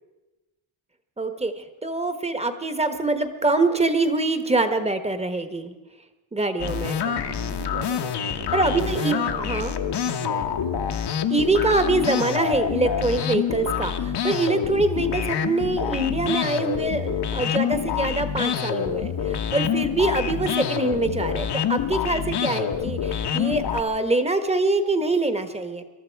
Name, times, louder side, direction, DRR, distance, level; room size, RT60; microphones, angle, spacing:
voice 1, 1.2-5.7 6.3-7.0 8.5-9.2 9.4-9.7 11.3-25.8, right 2 dB, 15° right, 8 dB, 1.3 m, -24 dB
sound 1, 6.6-23.8, left 8 dB, 55° left, 1.2 m, -26 dB
voice 2, 6.6-9.5 9.9-11.0 20.2-20.4, right 5 dB, 80° right, 3 dB, 2.3 m, -38 dB
23.0 x 12.5 x 4.7 m, 1.1 s
cardioid pair, 120°, 49 cm